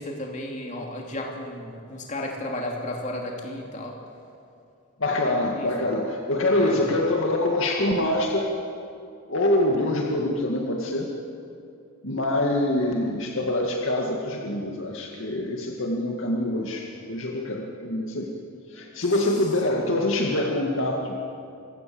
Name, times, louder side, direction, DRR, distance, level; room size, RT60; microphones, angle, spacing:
voice 1, 0.0-3.9 5.6-5.7 6.6-6.9, left 1 dB, 35° left, 0 dB, 2.8 m, -33 dB
voice 2, 5.0-8.5 9.3-11.1 12.0-18.3 18.7-21.2, left 1 dB, 70° left, 0 dB, 2.1 m, -25 dB
27.0 x 15.5 x 7.8 m, 2.5 s
head